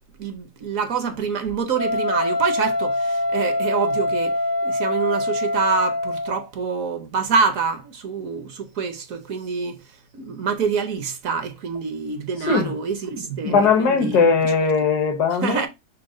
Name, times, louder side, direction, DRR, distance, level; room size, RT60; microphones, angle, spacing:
voice 1, 0.2-4.4 4.6-9.8 10.1-14.5 15.4-15.7, right 5 dB, 65° right, 1.1 m, -26 dB
Wind instrument woodwind instrument, 1.8-6.5, left 1 dB, 25° left, 0.5 m, -24 dB
voice 2, 13.4-15.7, left 5 dB, 75° left, 1.5 m, -19 dB
6.2 x 2.2 x 3.7 m
omnidirectional pair, 1.7 m